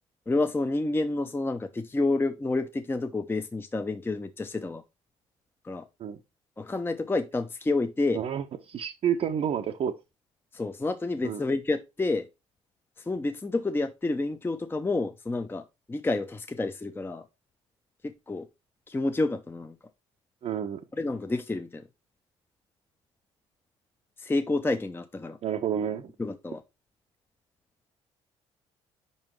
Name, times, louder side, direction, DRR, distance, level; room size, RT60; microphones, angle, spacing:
voice 1, 0.3-4.8 5.6-5.9 6.6-8.2 10.5-12.3 13.0-17.3 18.0-18.5 18.9-19.8 20.9-21.9 24.2-25.4 26.2-26.6, left 2 dB, 15° left, 0.6 m, -29 dB
voice 2, 8.1-9.9 11.2-11.4 20.4-20.8 25.4-26.1, right 8 dB, 45° right, 0.7 m, -29 dB
5.5 x 5.2 x 4.4 m
figure-of-eight pair, 50°, 15 cm